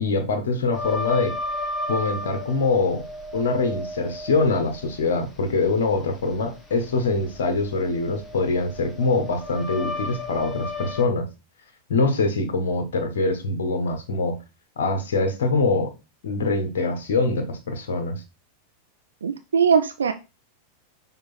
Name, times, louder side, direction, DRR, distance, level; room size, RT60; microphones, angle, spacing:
voice 1, 0.0-1.4 1.9-3.0 3.3-11.3 11.9-14.4 14.8-15.9 16.2-18.2, left 3 dB, 60° left, 1.4 m, -24 dB
sound 1, 0.7-11.0, left 2 dB, 15° left, 1.4 m, -34 dB
voice 2, 19.2-20.1, right 6 dB, 70° right, 0.5 m, -20 dB
6.7 x 3.7 x 4.4 m
figure-of-eight pair, 90°, 0 cm